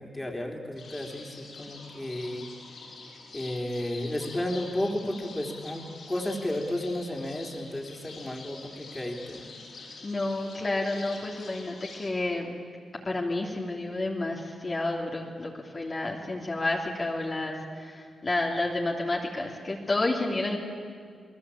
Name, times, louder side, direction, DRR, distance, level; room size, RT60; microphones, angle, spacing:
voice 1, 0.0-2.5 3.3-9.5, left 1 dB, 15° left, 2 dB, 3.9 m, -33 dB
sound 1, 0.8-12.1, left 3 dB, 70° left, 7.3 m, -46 dB
voice 2, 10.0-12.5 13.0-20.6, left 2 dB, 35° left, -2 dB, 3.1 m, -30 dB
29.0 x 19.5 x 8.8 m, 2.1 s
cardioid pair, 70°, 0 cm